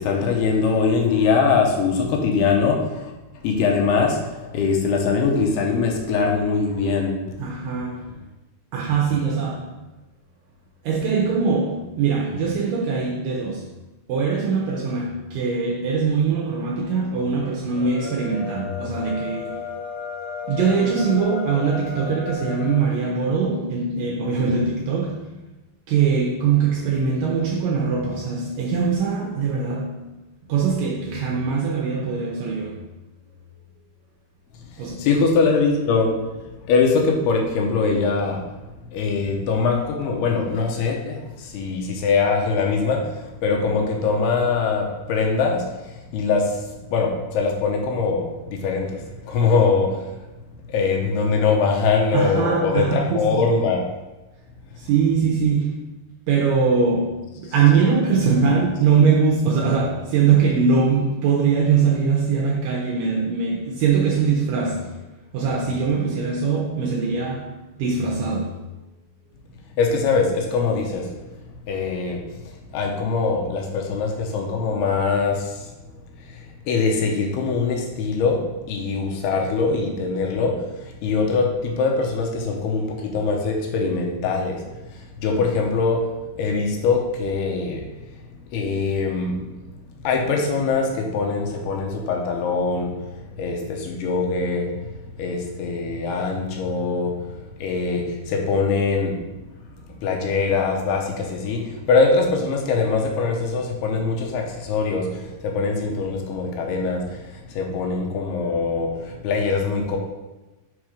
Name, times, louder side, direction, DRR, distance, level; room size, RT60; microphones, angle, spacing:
voice 1, 0.0-3.1 3.4-7.4 35.0-36.3 36.7-38.5 38.9-45.7 46.1-50.1 50.7-53.8 69.8-71.1 71.7-72.2 72.7-75.7 76.3-87.9 88.5-89.4 90.0-93.1 93.4-94.9 95.2-97.3 97.6-99.2 100.0-110.0, left 4 dB, 80° left, 2.8 m, -22 dB
voice 2, 7.4-8.0 8.7-9.7 10.8-13.7 14.1-19.6 20.5-25.3 25.9-30.0 30.5-32.8 34.8-35.0 52.1-53.4 54.8-55.8 56.3-65.0 65.3-68.7, right 5 dB, 80° right, 2.0 m, -22 dB
sound 1, 17.7-23.0, left 6 dB, 65° left, 2.2 m, -33 dB
6.3 x 4.2 x 4.9 m
omnidirectional pair, 4.7 m